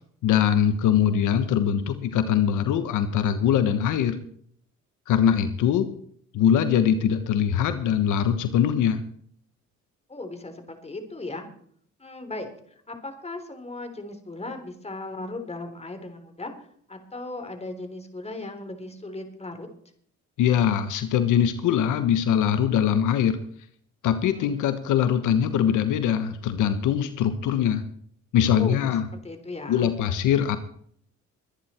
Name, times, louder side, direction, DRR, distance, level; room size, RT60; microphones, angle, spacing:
voice 1, 0.2-4.2 5.1-5.9 6.3-9.0 20.4-23.4 24.0-27.8 28.3-29.0 29.7-30.6, left 9 dB, 85° left, 10 dB, 1.3 m, -22 dB
voice 2, 10.1-11.4 12.0-16.5 16.9-19.7 24.3-24.6 28.5-29.9, left 2 dB, 20° left, 7 dB, 3.6 m, -37 dB
23.5 x 9.8 x 4.5 m, 0.62 s
cardioid pair, 90°, 30 cm